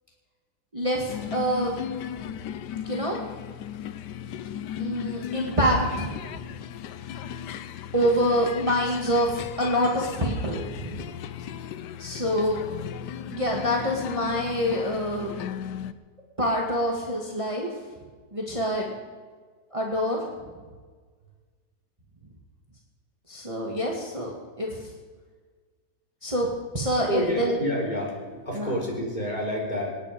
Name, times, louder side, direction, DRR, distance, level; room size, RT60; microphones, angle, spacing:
voice 1, 0.7-1.8 2.9-3.2 4.8-6.1 7.9-11.1 12.0-12.6 13.3-15.4 16.4-17.7 18.3-18.9 19.7-20.2 23.3-24.8 26.2-26.5 26.7-27.6 28.6-28.7, equal, 20° right, -2 dB, 2.0 m, -26 dB
sound 1, 1.1-15.9, left 9 dB, 75° left, 1.3 m, -36 dB
voice 2, 27.1-28.2 28.4-29.9, left 1 dB, 25° left, -3 dB, 4.1 m, -28 dB
26.5 x 9.9 x 5.2 m, 1.5 s
omnidirectional pair, 1.8 m